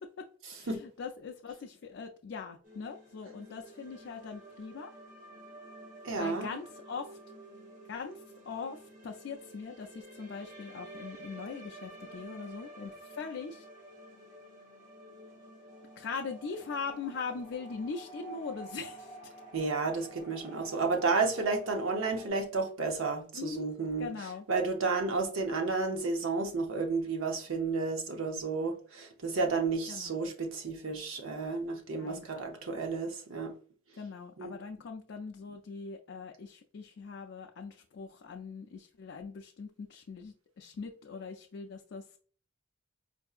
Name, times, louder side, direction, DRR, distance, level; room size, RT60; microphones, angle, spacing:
voice 1, 0.5-4.9 6.2-7.2 7.9-13.7 16.0-19.2 23.3-23.7 24.0-24.5 29.9-30.2 32.0-32.2 34.0-42.2, left 5 dB, 65° left, 0.4 m, -41 dB
sound 1, 2.6-22.3, right 1 dB, 40° right, 0.8 m, -50 dB
voice 2, 6.0-6.5 19.5-24.1 24.5-33.5 34.4-34.5, right 4 dB, 90° right, 0.7 m, -32 dB
4.5 x 2.6 x 2.4 m
head